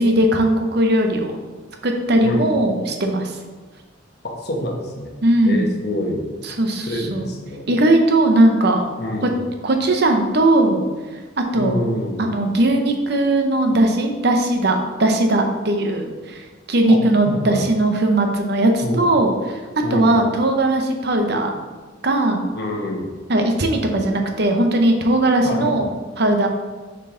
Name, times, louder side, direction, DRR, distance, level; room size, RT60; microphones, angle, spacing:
voice 1, 0.0-1.4 1.8-3.3 5.2-5.7 6.4-7.2 7.7-8.8 9.2-9.3 9.6-10.8 11.4-11.8 12.2-16.4 16.7-19.6 19.9-21.6 22.0-22.4 23.3-25.9 26.2-26.5, right 1 dB, 55° right, 4 dB, 0.7 m, -18 dB
voice 2, 2.2-2.5 4.2-5.2 5.4-6.3 6.9-7.7 9.0-9.4 11.6-12.2 16.9-17.0 17.2-17.6 18.8-19.1 19.8-20.2 22.5-23.1 25.4-25.8, left 1 dB, 55° left, 1 dB, 1.1 m, -26 dB
6.6 x 4.6 x 3.8 m, 1.3 s
head